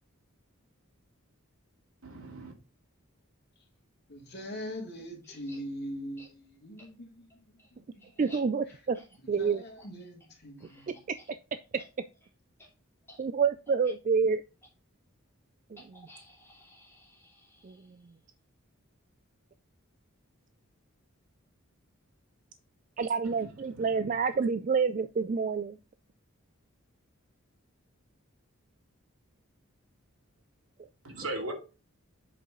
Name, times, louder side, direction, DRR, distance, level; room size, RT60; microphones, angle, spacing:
voice 1, 2.0-2.5 23.2-23.5 23.7-24.1 31.0-31.5, right 2 dB, 80° right, 2.4 m, -39 dB
voice 2, 4.1-8.2 8.6-8.9 9.2-11.0, equal, 50° left, 2.6 m, -42 dB
sound 1, 5.2-5.6 6.2-6.3 6.8-6.9 7.3-11.3 11.6-11.9 12.1-12.3 12.6-12.7 13.0-13.2 13.7-13.9 14.6-14.7 15.8-18.1, left 1 dB, 10° left, 2.7 m, -56 dB
voice 3, 8.2-9.0 9.3-9.6 11.1-11.2 11.7-11.8 13.2-14.4 15.7-16.1 17.6-17.7 23.0-25.8, right 5 dB, 35° right, 0.3 m, -28 dB
7.8 x 4.8 x 3.8 m
head